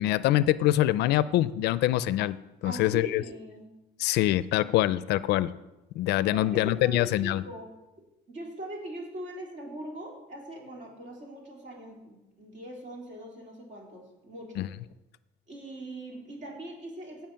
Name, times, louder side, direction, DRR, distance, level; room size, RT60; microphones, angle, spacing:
voice 1, 0.0-2.4 2.6-3.2 4.0-5.5 6.0-7.4 14.6-14.7, left 14 dB, 70° left, 17 dB, 0.4 m, -24 dB
voice 2, 2.6-3.6 6.3-7.7 8.3-14.7 15.5-17.3, right 1 dB, 45° right, 0 dB, 2.9 m, -41 dB
16.5 x 5.7 x 5.7 m, 1.0 s
cardioid pair, 165°, 18 cm